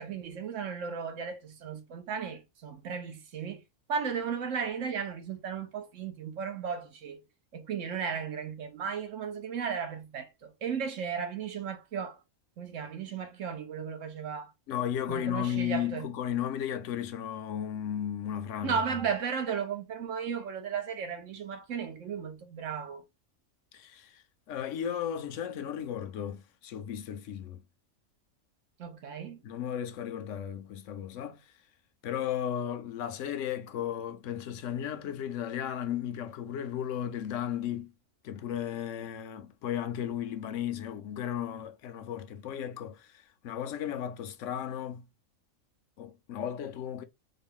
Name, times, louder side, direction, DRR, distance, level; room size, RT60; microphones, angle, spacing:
voice 1, 0.0-3.6 3.9-7.2 7.5-12.2 12.6-14.5 15.1-16.1 18.6-23.0 28.8-29.4, right 6 dB, 70° right, 1.2 m, -35 dB
voice 2, 14.7-18.8 23.7-24.2 24.5-27.6 29.4-31.4 32.0-37.9 38.2-45.1 46.0-47.0, left 10 dB, 70° left, 0.9 m, -35 dB
3.8 x 2.2 x 3.6 m
omnidirectional pair, 1.4 m